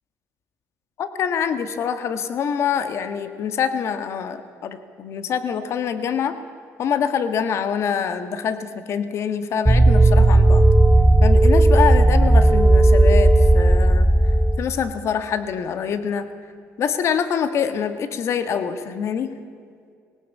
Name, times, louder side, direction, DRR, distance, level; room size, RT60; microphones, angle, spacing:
voice 1, 1.0-6.4 6.8-10.6 11.2-14.1 14.6-16.3 16.8-19.3, left 7 dB, 55° left, 11 dB, 1.7 m, -25 dB
sound 1, 9.7-14.6, right 1 dB, 5° right, 0.7 m, -14 dB
20.5 x 18.0 x 8.5 m, 2.3 s
cardioid pair, 115°, 6 cm